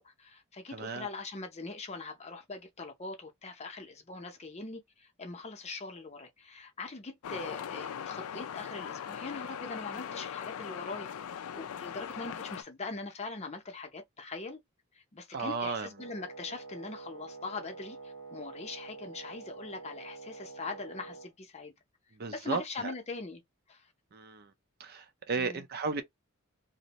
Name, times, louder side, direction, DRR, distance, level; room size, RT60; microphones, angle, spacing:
voice 1, 0.0-14.6 14.9-21.7 22.3-23.4 23.7-23.9 25.4-25.6, left 3 dB, 30° left, 0.6 m, -42 dB
voice 2, 0.7-1.1 15.3-15.9 22.2-22.9 24.1-24.5 24.8-26.0, right 4 dB, 45° right, 0.5 m, -34 dB
sound 1, 7.2-12.6, left 8 dB, 80° left, 0.4 m, -40 dB
Wind instrument woodwind instrument, 16.0-21.3, right 4 dB, 80° right, 0.7 m, -47 dB
2.6 x 2.1 x 2.9 m
head